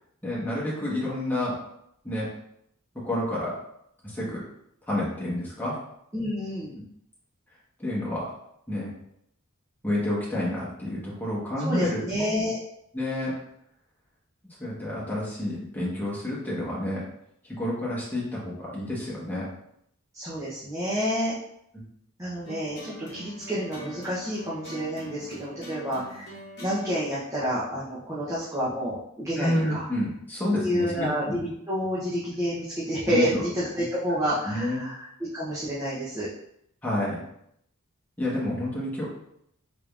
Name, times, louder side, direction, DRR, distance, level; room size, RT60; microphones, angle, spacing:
voice 1, 0.2-1.6 2.0-2.3 3.0-3.5 4.0-4.4 4.9-5.8 7.8-8.3 8.7-8.9 9.8-12.0 12.9-13.3 14.6-17.0 17.6-19.4 29.4-31.3 33.1-33.4 34.4-34.8 36.8-37.2 38.2-39.1, left 1 dB, 10° left, -8 dB, 1.1 m, -29 dB
voice 2, 6.1-6.7 11.6-12.6 20.1-21.4 22.2-26.3 26.6-29.9 30.6-35.0 35.3-36.3, equal, 15° right, -8 dB, 0.6 m, -29 dB
sound 1, 22.5-28.9, equal, 50° left, 0.9 m, -44 dB
3.6 x 3.4 x 2.4 m, 0.75 s
head